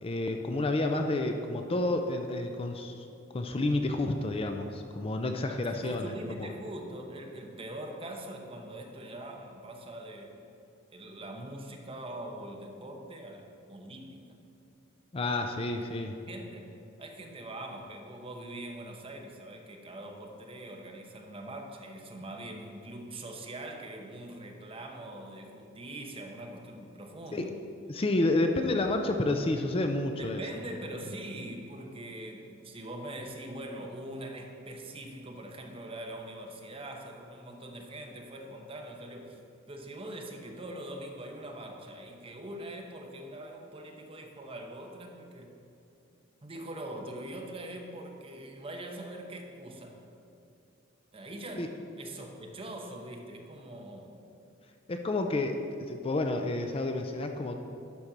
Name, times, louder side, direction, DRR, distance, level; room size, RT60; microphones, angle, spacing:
voice 1, 0.0-3.1 3.3-6.1 15.1-16.2 27.3-27.5 27.9-30.4 31.0-31.1 51.6-51.7 54.9-57.5, left 2 dB, 30° left, 5 dB, 0.5 m, -30 dB
voice 2, 5.6-10.4 10.9-14.4 16.3-16.7 17.0-27.5 30.2-45.6 46.4-50.0 51.1-54.2, right 1 dB, 30° right, 2 dB, 0.9 m, -43 dB
11.5 x 4.3 x 6.0 m, 2.7 s
head